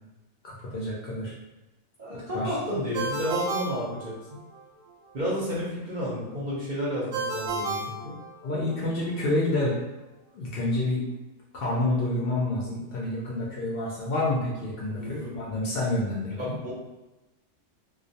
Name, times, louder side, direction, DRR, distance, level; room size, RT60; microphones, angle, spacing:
voice 1, 0.4-1.3 2.1-2.6 8.4-9.8 10.3-11.0 11.5-16.5, left 2 dB, 65° left, -5 dB, 0.6 m, -28 dB
voice 2, 2.0-4.4 5.1-8.2 14.9-15.3 16.4-16.7, equal, 50° right, -7 dB, 0.6 m, -31 dB
Ringtone, 2.9-4.6 7.1-8.8, right 3 dB, 85° right, 1.0 m, -32 dB
2.2 x 2.1 x 2.6 m, 1.1 s
omnidirectional pair, 1.4 m